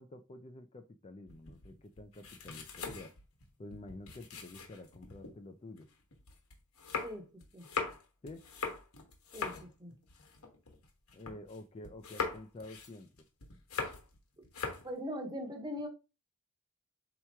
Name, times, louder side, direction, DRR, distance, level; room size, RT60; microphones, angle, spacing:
voice 1, 0.0-3.1 3.6-5.9 8.2-8.4 11.1-13.3, left 2 dB, 25° left, 0.4 m, -49 dB
sound 1, 1.3-5.3 5.8-11.6 11.8-14.2 14.4-14.9, left 4 dB, 75° left, 1.1 m, -41 dB
voice 2, 9.3-9.9 14.4-14.5 14.8-15.9, equal, 20° right, 0.9 m, -41 dB
3.5 x 2.9 x 4.5 m
head